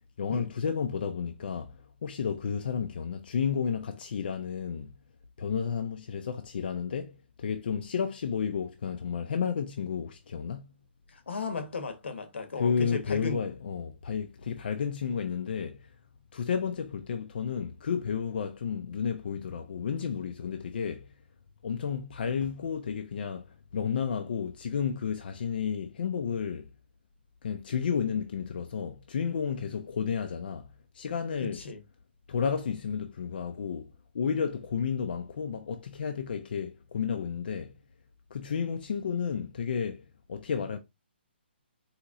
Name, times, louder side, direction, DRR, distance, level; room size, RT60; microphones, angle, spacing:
voice 1, 0.2-4.9 5.4-10.7 12.6-16.0 16.3-21.1 21.6-26.7 27.4-30.7 30.9-31.6 32.3-37.7 38.3-40.8, left 6 dB, 55° left, 0.4 m, -32 dB
voice 2, 11.1-13.4 31.4-31.8, left 4 dB, 80° left, 1.0 m, -36 dB
4.2 x 2.8 x 2.4 m
hypercardioid pair, 165°, 6 cm